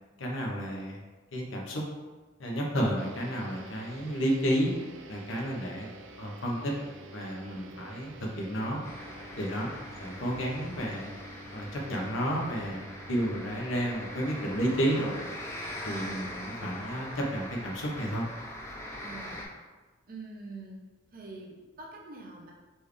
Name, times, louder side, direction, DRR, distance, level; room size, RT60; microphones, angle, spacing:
voice 1, 0.2-1.0 1.3-1.8 2.4-4.7 5.1-5.9 6.2-6.7 7.1-8.8 9.3-9.7 10.0-11.1 11.5-15.2 15.8-18.2, equal, 90° left, -1 dB, 1.0 m, -31 dB
sound 1, 3.0-17.8, right 2 dB, 75° right, 0.4 m, -49 dB
sound 2, 8.8-19.4, left 1 dB, 15° left, 0.6 m, -42 dB
voice 2, 14.9-15.2 18.9-19.4 20.1-20.8 21.1-22.5, right 3 dB, 50° right, -1 dB, 0.8 m, -44 dB
4.5 x 3.4 x 3.2 m, 1.3 s
head